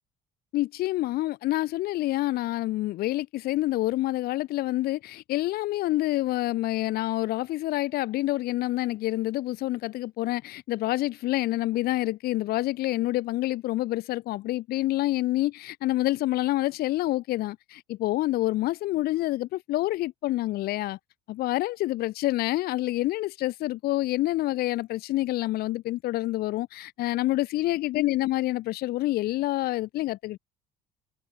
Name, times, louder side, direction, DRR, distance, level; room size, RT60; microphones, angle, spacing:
voice 1, 0.5-21.0 21.3-30.4, left 17 dB, 70° left, 3.0 m, -27 dB
cardioid pair, 125°, 16 cm